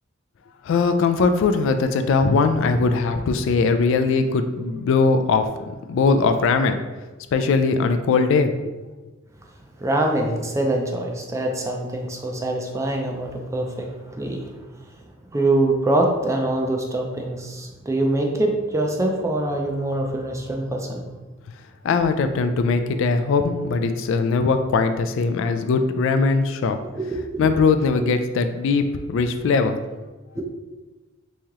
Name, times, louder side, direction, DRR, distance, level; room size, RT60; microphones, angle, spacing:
voice 1, 0.6-5.5 5.9-6.8 7.3-8.7 21.8-26.8 27.4-29.8, left 4 dB, 65° left, 8 dB, 0.3 m, -20 dB
voice 2, 9.8-13.9 14.2-14.5 15.3-21.0 26.9-27.5 30.4-30.5, right 1 dB, 15° right, 1 dB, 0.4 m, -24 dB
3.1 x 2.8 x 3.5 m, 1.2 s
head